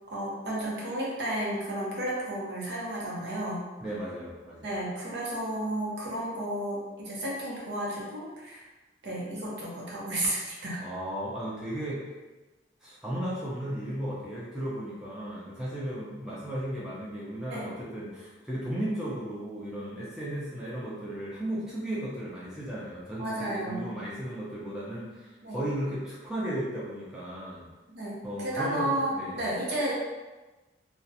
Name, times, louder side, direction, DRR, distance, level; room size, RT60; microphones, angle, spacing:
voice 1, 0.0-3.7 4.6-8.6 9.0-10.8 17.5-17.7 23.2-23.8 25.4-25.6 27.9-30.0, right 1 dB, 70° right, -5 dB, 0.7 m, -32 dB
voice 2, 3.8-4.7 10.8-12.0 12.8-27.6 28.2-29.4, right 1 dB, 5° right, -8 dB, 0.5 m, -35 dB
2.4 x 2.1 x 2.6 m, 1.2 s
head